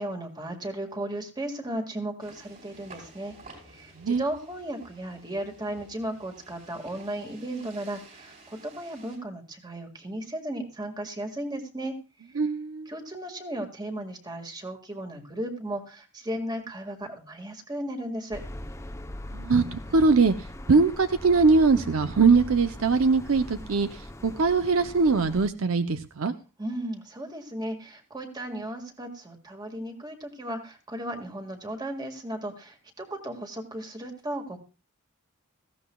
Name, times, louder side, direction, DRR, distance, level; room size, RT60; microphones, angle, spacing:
voice 1, 0.0-3.3 3.7-11.9 12.9-18.4 26.6-34.6, right 1 dB, 20° right, 4 dB, 1.9 m, -35 dB
sound 1, 2.2-9.2, right 2 dB, 40° right, 5.2 m, -51 dB
voice 2, 12.4-12.9 19.3-20.3 20.7-23.9 24.2-26.3, right 4 dB, 70° right, 10 dB, 0.7 m, -21 dB
sound 2, 18.3-25.5, left 1 dB, 15° left, 0.7 m, -41 dB
18.0 x 15.5 x 2.3 m, 0.32 s
head